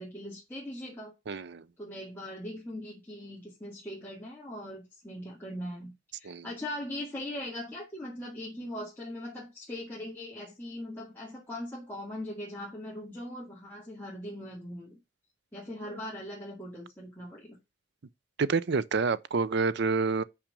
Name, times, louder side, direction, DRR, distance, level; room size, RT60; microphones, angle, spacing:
voice 1, 0.0-1.1 1.8-5.9 6.2-15.0 15.5-17.6, left 1 dB, 10° left, 2.2 m, -40 dB
voice 2, 1.3-1.7 6.2-6.5 18.4-20.2, right 4 dB, 60° right, 0.5 m, -28 dB
5.9 x 5.0 x 6.7 m
head